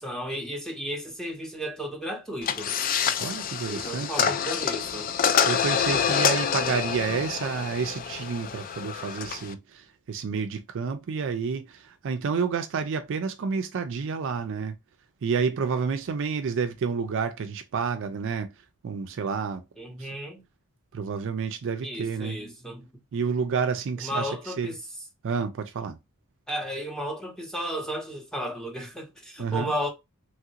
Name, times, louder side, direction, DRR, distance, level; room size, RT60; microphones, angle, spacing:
voice 1, 0.0-2.8 3.7-5.1 19.8-20.4 21.8-22.9 24.0-24.8 26.5-29.9, equal, 5° left, 0.9 m, -34 dB
sound 1, 2.4-9.5, left 7 dB, 40° left, 0.3 m, -27 dB
voice 2, 3.2-4.3 5.5-14.8 15.2-18.5 18.8-19.6 20.0-20.1 20.9-22.4 23.1-24.7 25.2-26.0 29.4-29.7, right 5 dB, 60° right, 0.4 m, -29 dB
3.1 x 2.5 x 2.8 m
head